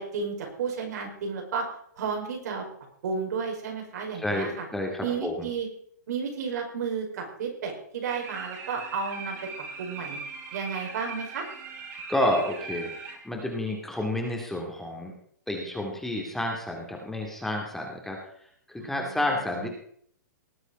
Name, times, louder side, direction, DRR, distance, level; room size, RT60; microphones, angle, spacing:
voice 1, 0.0-1.7 2.0-2.6 3.0-4.7 5.0-5.7 6.1-9.4 9.8-10.2 10.5-11.4 18.8-19.4, right 5 dB, 65° right, 1 dB, 5.4 m, -32 dB
voice 2, 4.2-5.5 12.1-15.1 15.5-18.2 18.7-19.7, left 1 dB, 5° left, 0 dB, 2.4 m, -30 dB
sound 1, 8.1-13.2, right 4 dB, 30° right, 3.6 m, -40 dB
19.0 x 8.1 x 5.4 m, 0.64 s
hypercardioid pair, 140°, 10 cm